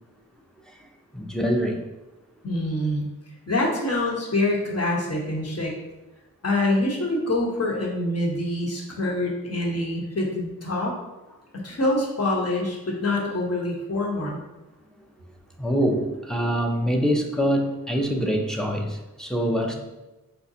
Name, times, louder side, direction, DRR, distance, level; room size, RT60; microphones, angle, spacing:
voice 1, 1.1-1.8 11.6-11.7 15.6-19.8, equal, ahead, 1 dB, 0.5 m, -24 dB
voice 2, 2.4-3.0 3.5-5.7 6.4-10.9 11.6-14.4, left 1 dB, 45° left, -3 dB, 1.1 m, -25 dB
5.0 x 2.2 x 2.7 m, 1.0 s
cardioid pair, 50°, 35 cm